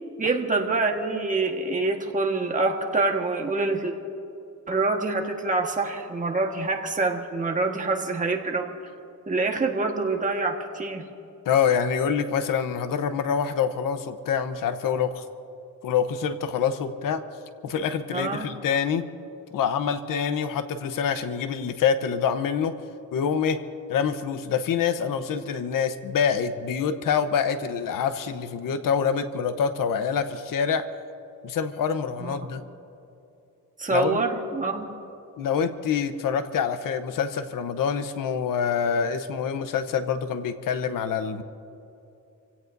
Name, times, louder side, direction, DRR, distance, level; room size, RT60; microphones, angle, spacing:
voice 1, 0.2-3.9 4.7-8.7 9.3-11.0 18.1-18.4 32.2-32.6 33.8-34.9, right 3 dB, 25° right, 1 dB, 1.5 m, -26 dB
voice 2, 11.5-15.2 15.8-17.2 17.6-19.1 19.5-22.8 23.1-23.6 23.9-30.9 31.4-32.6 33.9-34.2 35.4-41.4, left 7 dB, 90° left, 10 dB, 0.9 m, -26 dB
28.5 x 17.0 x 2.7 m, 2.7 s
wide cardioid pair, 135°, 32 cm